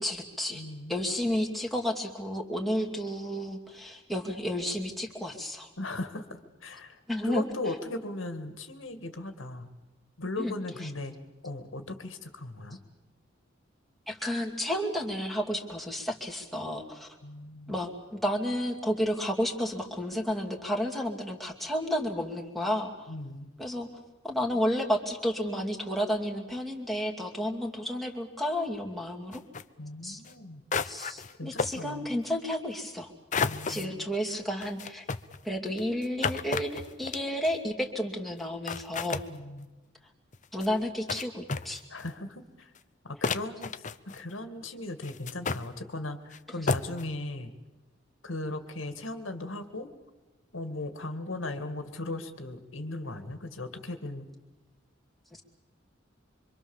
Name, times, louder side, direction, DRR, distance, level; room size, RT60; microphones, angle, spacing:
voice 1, 0.0-0.6 0.9-5.7 7.1-7.4 10.4-10.5 10.8-10.9 14.1-17.1 17.7-23.1 23.6-23.9 24.2-29.4 30.0-30.2 30.8-33.1 33.4-35.0 35.4-39.2 40.5-41.8 46.6-46.7, equal, ahead, 0 dB, 2.6 m, -31 dB
voice 2, 0.5-0.9 5.8-9.7 10.2-11.1 11.4-12.8 17.2-17.7 23.1-23.5 29.8-30.6 31.4-32.2 33.4-34.1 39.3-39.7 41.9-42.7 43.0-43.8 44.1-47.5 48.2-49.9 50.5-54.3, left 2 dB, 85° left, 8 dB, 2.1 m, -38 dB
sound 1, 29.3-29.6 30.2-30.3 30.7-31.3 31.6-31.8 33.3-33.9 34.6-37.6 38.4-38.5 38.7-39.3 40.3-40.7 41.1-41.2 41.5-42.1 42.7-42.8 43.2-44.3 45.0-45.6 46.3-46.4 46.7-47.0, left 5 dB, 40° left, 0.8 m, -32 dB
25.5 x 25.0 x 7.2 m, 1.1 s
head